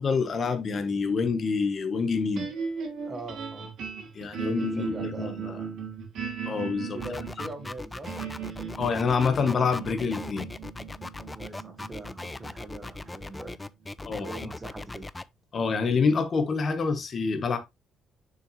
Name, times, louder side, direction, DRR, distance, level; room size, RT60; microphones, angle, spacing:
voice 1, 0.0-2.5 4.1-5.6 6.5-7.0 8.8-10.5 14.0-14.3 15.5-17.6, left 5 dB, 35° left, 1.2 m, -27 dB
sound 1, 2.4-14.7, right 6 dB, 65° right, 3.1 m, -38 dB
voice 2, 3.0-3.7 4.3-5.8 6.9-8.1 11.2-13.6 14.0-15.1, right 2 dB, 20° right, 1.4 m, -42 dB
sound 2, 7.0-15.2, left 2 dB, 10° left, 0.3 m, -39 dB
6.8 x 5.7 x 3.1 m
cardioid pair, 165°, 0 cm